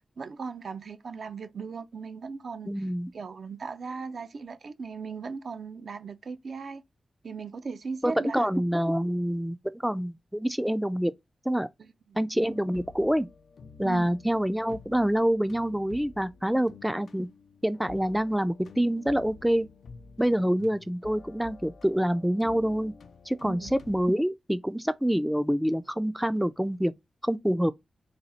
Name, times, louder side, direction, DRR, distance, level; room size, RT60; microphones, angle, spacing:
voice 1, 0.2-2.8 3.1-6.8 7.2-8.5 11.8-12.2 13.8-14.1 23.4-23.7, right 5 dB, 70° right, 0.6 m, -38 dB
voice 2, 2.7-3.1 8.0-9.6 9.8-11.1 11.5-11.7 12.2-13.3 13.8-17.3 17.6-19.7 20.2-22.9 23.3-26.9 27.2-27.7, equal, 5° right, 0.4 m, -26 dB
sound 1, 12.4-24.1, left 5 dB, 85° left, 0.5 m, -50 dB
4.0 x 2.3 x 4.3 m
cardioid pair, 65°, 0 cm